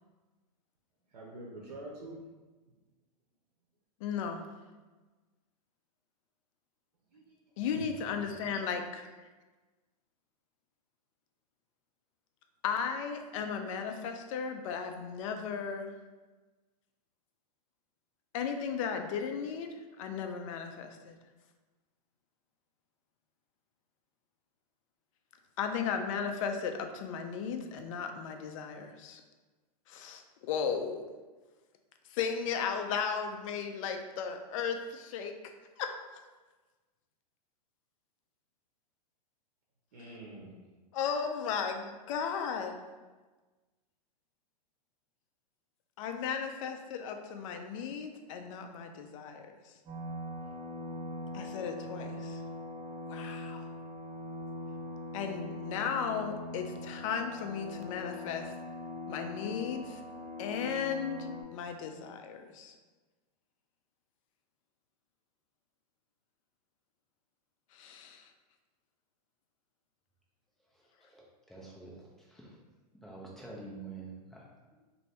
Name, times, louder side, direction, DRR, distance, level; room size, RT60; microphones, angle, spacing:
voice 1, 1.1-2.2 7.1-7.3 7.7-7.9 39.9-40.6, right 2 dB, 85° right, -3 dB, 0.7 m, -46 dB
voice 2, 4.0-4.4 7.6-9.1 12.6-15.9 18.3-21.2 25.6-29.2 29.9-31.0 32.1-35.3 35.8-35.9 40.9-42.8 46.0-49.5 51.3-52.4 53.1-53.7 55.1-58.5 59.1-60.0 60.4-61.2 61.5-62.7 67.7-68.3, left 6 dB, 50° left, 5 dB, 0.4 m, -35 dB
sound 1, 49.9-61.4, left 2 dB, 25° right, 0.7 m, -42 dB
voice 3, 70.7-72.6 73.0-74.8, right 3 dB, ahead, -4 dB, 0.5 m, -48 dB
2.6 x 2.6 x 3.2 m, 1.3 s
hypercardioid pair, 130°, 21 cm